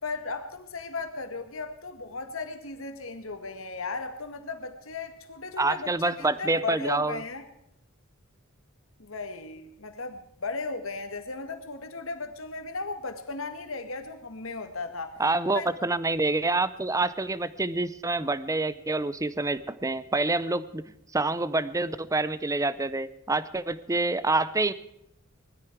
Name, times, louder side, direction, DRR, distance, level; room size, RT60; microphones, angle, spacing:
voice 1, 0.0-7.4 9.0-15.2 15.5-15.7, left 3 dB, 70° left, 8 dB, 1.9 m, -36 dB
voice 2, 5.6-7.2 15.2-20.8 21.1-24.7, right 2 dB, 15° right, 16 dB, 0.6 m, -27 dB
20.0 x 13.5 x 4.7 m, 0.80 s
head